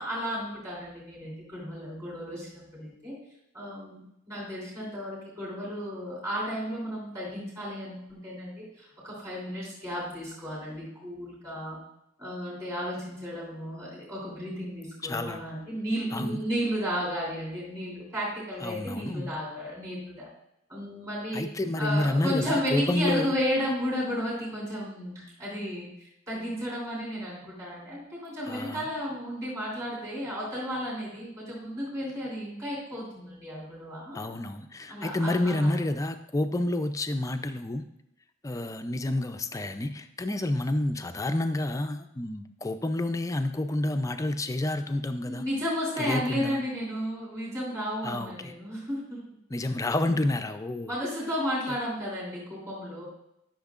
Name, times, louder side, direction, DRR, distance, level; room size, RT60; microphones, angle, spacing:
voice 1, 0.0-3.1 3.5-4.0 4.3-11.8 12.2-20.3 20.7-21.5 21.8-34.2 34.9-35.8 45.2-49.2 50.0-50.1 50.9-53.1, equal, 15° right, -7 dB, 2.9 m, -33 dB
voice 2, 15.0-15.4 16.1-16.4 18.6-19.4 21.3-23.4 28.5-28.9 34.1-37.8 38.4-45.5 46.0-46.6 48.0-48.5 49.5-50.9 51.7-51.8, left 1 dB, 15° left, 8 dB, 0.4 m, -29 dB
12.0 x 6.3 x 2.4 m, 0.82 s
head